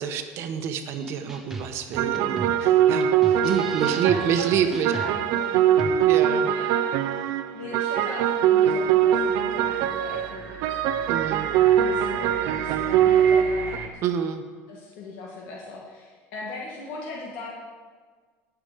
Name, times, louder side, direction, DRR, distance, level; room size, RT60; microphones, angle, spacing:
voice 1, 0.0-3.1 3.4-4.9 6.1-6.5 11.1-11.5 14.0-14.4, right 8 dB, 50° right, 7 dB, 1.1 m, -27 dB
sound 1, 0.9-6.3, right 2 dB, 5° right, 0.9 m, -38 dB
sound 2, 2.0-13.8, right 10 dB, 70° right, 0.7 m, -22 dB
voice 2, 3.8-6.0 6.5-6.9 7.5-10.8 11.3-13.9 14.7-17.5, left 3 dB, 70° left, -3 dB, 1.9 m, -39 dB
sound 3, 8.2-13.9, right 4 dB, 35° right, 1.8 m, -39 dB
18.0 x 6.1 x 5.1 m, 1.5 s
cardioid pair, 150°, 6 cm